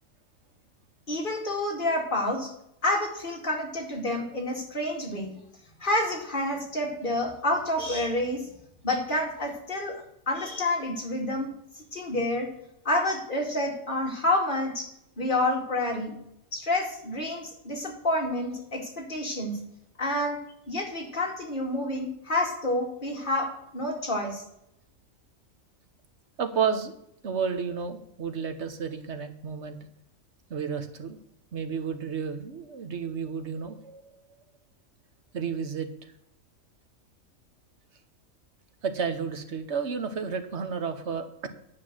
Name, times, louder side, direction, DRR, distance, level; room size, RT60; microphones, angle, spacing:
voice 1, 1.1-2.5 2.8-5.3 5.8-8.4 8.8-11.5 11.7-12.5 12.8-14.9 15.2-16.2 16.5-19.6 20.0-20.4 20.7-24.4, left 1 dB, 35° left, 0 dB, 2.5 m, -28 dB
voice 2, 26.4-26.9 27.2-29.8 30.5-31.2 31.5-34.2 35.3-35.9 38.8-41.5, right 6 dB, 55° right, 7 dB, 1.3 m, -31 dB
9.9 x 5.9 x 7.6 m, 0.79 s
omnidirectional pair, 1.5 m